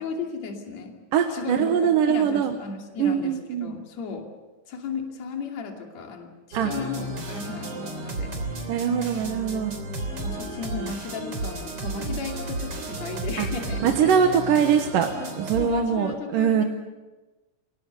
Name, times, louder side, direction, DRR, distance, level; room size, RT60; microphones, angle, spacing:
voice 1, 0.0-1.0 1.3-4.2 4.7-8.7 10.1-14.2 15.6-16.6, left 5 dB, 55° left, 2 dB, 3.7 m, -35 dB
voice 2, 1.1-2.6 3.0-3.7 6.5-6.7 8.7-9.8 13.4-13.5 13.8-15.1 15.4-16.6, right 8 dB, 80° right, 5 dB, 2.9 m, -22 dB
sound 1, 6.5-15.6, right 2 dB, 45° right, 4.1 m, -33 dB
29.5 x 19.0 x 6.9 m, 1.1 s
omnidirectional pair, 3.8 m